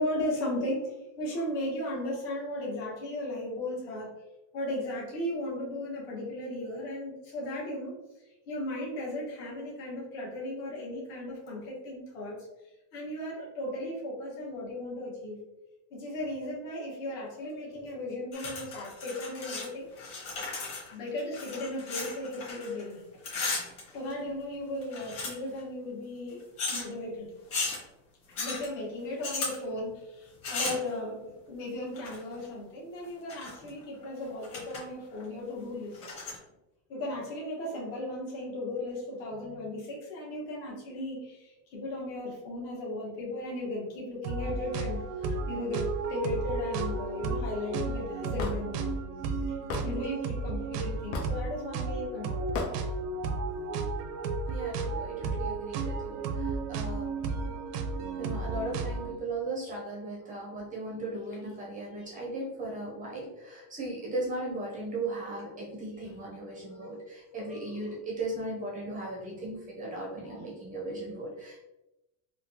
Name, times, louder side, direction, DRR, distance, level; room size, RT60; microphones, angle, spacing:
voice 1, 0.0-4.1 4.5-7.9 8.5-12.4 12.9-15.4 15.9-20.2 20.9-23.0 23.9-27.3 28.3-36.0 36.9-49.0 49.8-52.5 61.2-61.7 61.9-62.2 63.4-63.5 65.8-66.1 66.6-67.0 67.3-67.9 69.9-70.4, left 1 dB, 60° left, -4 dB, 1.4 m, -36 dB
sound 1, 18.3-19.7 19.9-22.9 23.1-24.4 24.8-25.6 26.6-26.9 27.5-27.8 28.4-28.7 29.2-29.6 30.4-30.9 31.9-32.3 33.0-33.7 34.0-34.1 34.4-34.8 35.2-35.3 35.9-36.4, left 3 dB, 35° left, 1.2 m, -35 dB
sound 2, 44.2-59.1, right 4 dB, 75° right, 0.6 m, -33 dB
Hammer / Wood, 48.4-48.6 49.7-49.9 51.1-51.4 52.5-52.7, left 3 dB, 80° left, 0.8 m, -32 dB
voice 2, 54.5-57.4 58.2-71.6, right 2 dB, 20° right, -3 dB, 0.5 m, -37 dB
3.7 x 2.3 x 2.7 m, 0.95 s
cardioid pair, 160°, 49 cm